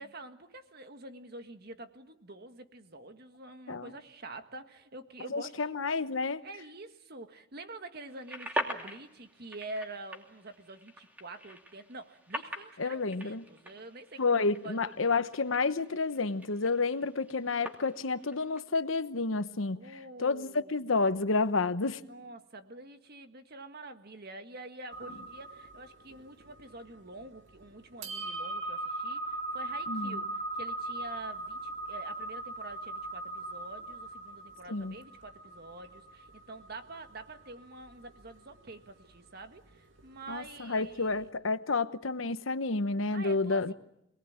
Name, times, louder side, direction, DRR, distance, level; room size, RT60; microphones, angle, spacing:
voice 1, 0.0-5.8 6.4-15.2 19.7-20.8 22.0-41.2 43.1-43.7, right 2 dB, 50° right, 1.7 m, -47 dB
voice 2, 5.3-6.4 12.8-13.4 14.2-19.8 20.2-22.0 29.9-30.2 34.7-35.0 40.3-43.7, left 3 dB, 90° left, 1.0 m, -30 dB
sound 1, 8.1-18.6, equal, 10° right, 2.7 m, -43 dB
sound 2, 24.9-41.3, right 2 dB, 70° right, 2.5 m, -40 dB
26.5 x 19.5 x 8.8 m
head